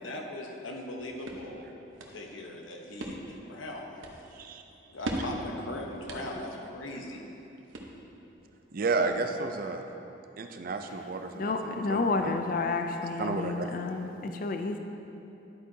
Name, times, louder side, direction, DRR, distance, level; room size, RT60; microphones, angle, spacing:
voice 1, 0.0-1.7 2.1-4.0 4.9-7.3, left 1 dB, 90° left, 1 dB, 1.0 m, -39 dB
sound 1, 0.7-8.3, right 1 dB, 90° right, 1.0 m, -42 dB
voice 2, 4.3-4.6 8.7-9.8 10.4-12.3 13.2-13.9, right 3 dB, 45° right, 6 dB, 0.4 m, -32 dB
voice 3, 11.3-14.8, left 3 dB, 45° left, 6 dB, 0.4 m, -30 dB
10.5 x 8.4 x 2.8 m, 2.9 s
head